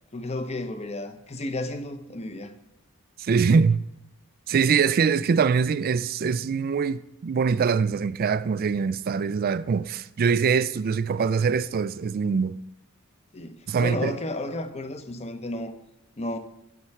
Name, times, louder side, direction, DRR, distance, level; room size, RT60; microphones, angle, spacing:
voice 1, 0.1-2.5 13.3-15.7 16.2-16.4, left 2 dB, 30° left, 0.8 m, -32 dB
voice 2, 3.2-3.8 4.5-12.6 13.7-14.2, right 5 dB, 40° right, 0.3 m, -23 dB
13.0 x 4.4 x 5.8 m
head